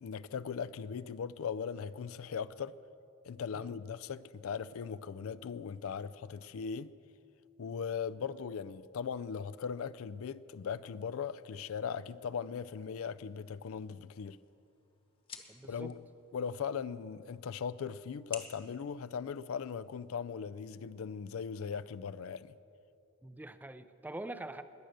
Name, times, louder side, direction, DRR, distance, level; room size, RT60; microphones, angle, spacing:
voice 1, 0.0-2.7 3.3-6.9 7.6-14.4 15.7-15.9 16.3-22.5, left 6 dB, 70° left, 0.4 m, -39 dB
sound 1, 14.0-20.0, left 5 dB, 25° left, 1.1 m, -53 dB
voice 2, 15.5-16.0 23.2-24.6, right 2 dB, 10° right, 0.4 m, -44 dB
20.5 x 7.7 x 6.6 m
head